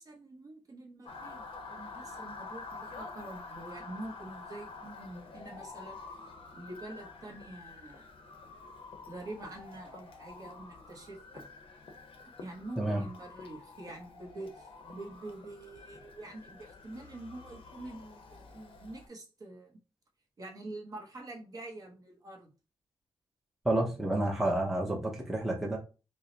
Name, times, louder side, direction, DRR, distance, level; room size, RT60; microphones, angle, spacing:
voice 1, 0.0-1.4 1.7-6.0 6.5-8.1 9.1-11.5 12.4-19.8 20.4-22.5, right 2 dB, 35° right, 0.9 m, -46 dB
Motor vehicle (road) / Siren, 1.1-19.1, left 4 dB, 60° left, 0.7 m, -48 dB
voice 2, 23.6-25.8, right 1 dB, 5° right, 0.6 m, -30 dB
4.7 x 2.0 x 2.7 m
wide cardioid pair, 165°, 10 cm